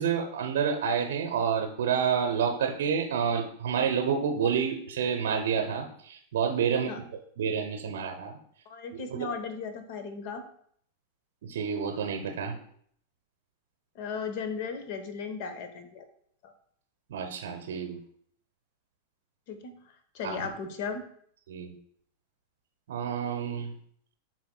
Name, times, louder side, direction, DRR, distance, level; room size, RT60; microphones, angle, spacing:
voice 1, 0.0-6.9 7.4-8.4 8.9-9.3 11.4-12.6 17.1-18.0 20.2-20.5 21.5-21.7 22.9-23.7, right 7 dB, 60° right, 4 dB, 0.7 m, -29 dB
voice 2, 8.7-10.4 13.9-16.0 16.4-16.5 19.5-21.0, left 5 dB, 45° left, 9 dB, 0.9 m, -36 dB
10.5 x 4.1 x 2.2 m, 0.63 s
figure-of-eight pair, 90°, 0 cm